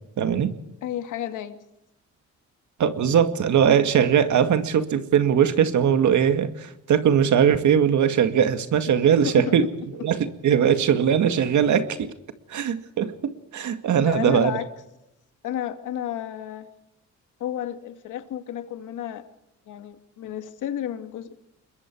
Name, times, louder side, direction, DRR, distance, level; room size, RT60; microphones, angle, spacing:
voice 1, 0.2-0.5 2.8-9.7 10.0-12.1 12.5-14.5, right 8 dB, 70° right, 9 dB, 2.1 m, -20 dB
voice 2, 0.8-1.6 9.2-9.6 13.9-14.7 15.4-16.7 17.4-19.3 19.7-21.4, left 11 dB, 90° left, 8 dB, 2.2 m, -31 dB
27.0 x 22.0 x 4.7 m, 0.85 s
cardioid pair, 110°, 30 cm